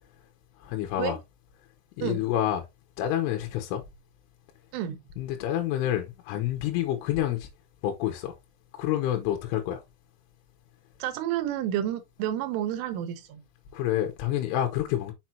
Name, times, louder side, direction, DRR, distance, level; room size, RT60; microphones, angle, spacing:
voice 1, 0.6-1.2 2.0-2.6 3.0-3.8 5.2-7.5 7.8-8.3 8.7-9.8 13.7-15.1, left 12 dB, 80° left, 3.3 m, -28 dB
voice 2, 11.0-13.4, right 11 dB, 80° right, 3.4 m, -30 dB
7.0 x 5.9 x 2.7 m
omnidirectional pair, 6.0 m